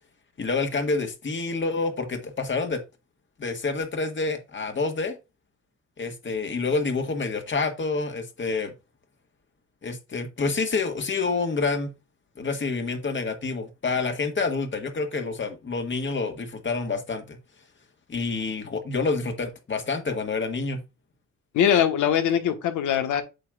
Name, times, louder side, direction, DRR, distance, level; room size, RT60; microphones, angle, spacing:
voice 1, 0.4-2.8 3.4-5.2 6.0-8.7 9.8-11.9 12.4-17.4 18.1-20.8, left 4 dB, 40° left, 1.7 m, -28 dB
voice 2, 21.5-23.2, left 9 dB, 80° left, 1.4 m, -22 dB
8.4 x 6.1 x 2.4 m
cardioid pair, 90°, 30 cm